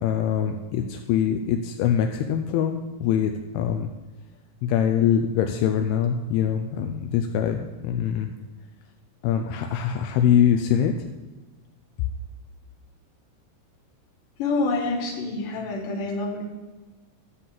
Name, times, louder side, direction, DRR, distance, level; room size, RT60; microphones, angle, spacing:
voice 1, 0.0-3.9 4.6-8.3 9.2-10.9, left 9 dB, 85° left, 5 dB, 2.6 m, -23 dB
voice 2, 14.4-16.4, left 3 dB, 65° left, 1 dB, 3.0 m, -27 dB
11.5 x 4.1 x 7.5 m, 1.2 s
omnidirectional pair, 4.5 m